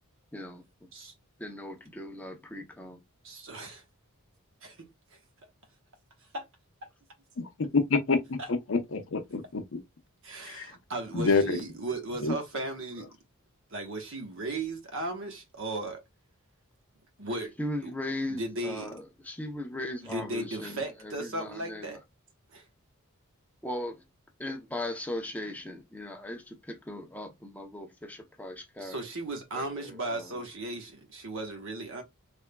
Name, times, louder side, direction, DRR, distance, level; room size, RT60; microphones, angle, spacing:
voice 1, 0.3-0.6 1.4-3.0 17.6-22.0 23.6-24.0 24.4-29.0 29.5-30.4, left 1 dB, 5° left, 0.6 m, -38 dB
voice 2, 3.2-3.8 4.6-4.9 6.3-6.5 10.2-13.1 13.7-16.0 17.2-17.5 17.8-17.9 18.3-18.9 20.0-22.0 22.5-22.6 28.8-32.0, right 2 dB, 60° right, 1.1 m, -36 dB
voice 3, 7.4-8.4 8.7-9.8 10.4-10.7 11.1-11.6 12.2-12.3, left 4 dB, 60° left, 0.6 m, -27 dB
3.5 x 3.4 x 2.2 m
head